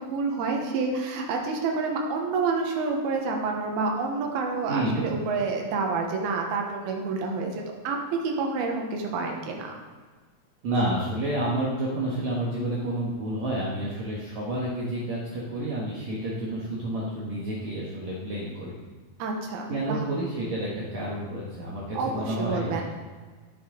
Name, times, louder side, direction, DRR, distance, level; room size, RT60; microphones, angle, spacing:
voice 1, 0.0-9.8 19.2-20.0 21.9-22.8, right 4 dB, 85° right, 1 dB, 3.1 m, -28 dB
voice 2, 4.7-5.1 10.6-18.8 19.7-22.7, right 1 dB, 60° right, -6 dB, 2.3 m, -29 dB
17.0 x 5.8 x 3.8 m, 1.4 s
omnidirectional pair, 4.3 m